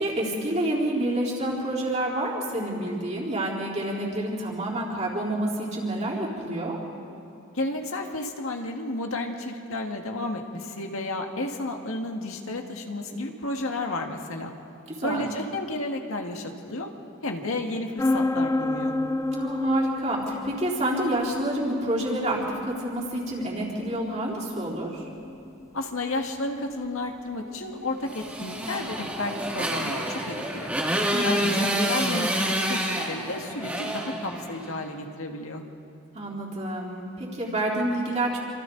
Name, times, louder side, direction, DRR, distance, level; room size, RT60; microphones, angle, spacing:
voice 1, 0.0-6.8 15.0-15.3 19.3-25.1 31.1-31.6 36.1-38.4, right 1 dB, 30° right, -4 dB, 4.0 m, -28 dB
voice 2, 7.5-14.5 15.0-16.9 17.2-18.9 25.7-30.7 31.2-35.6, left 2 dB, 75° left, 3 dB, 1.9 m, -32 dB
sound 1, 18.0-29.5, left 2 dB, 15° left, 0.5 m, -32 dB
Motorcycle, 28.1-34.8, right 1 dB, 5° right, 2.4 m, -28 dB
28.0 x 26.0 x 4.0 m, 2.8 s
head